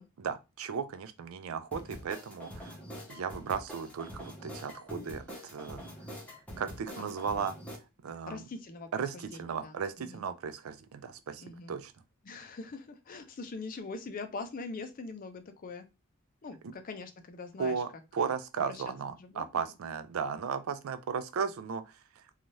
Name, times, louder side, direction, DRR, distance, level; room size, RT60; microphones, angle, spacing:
voice 1, 0.2-2.8 3.1-5.8 6.6-7.5 8.0-8.4 8.9-11.9 17.6-21.8 22.2-22.3, right 6 dB, 85° right, 0.4 m, -35 dB
sound 1, 1.7-7.8, equal, 5° left, 0.9 m, -45 dB
voice 2, 8.3-10.2 11.4-11.7 12.2-15.9 16.4-17.8 18.2-18.3 18.6-18.8 19.2-19.7, left 3 dB, 45° left, 0.5 m, -43 dB
2.6 x 2.4 x 3.0 m
head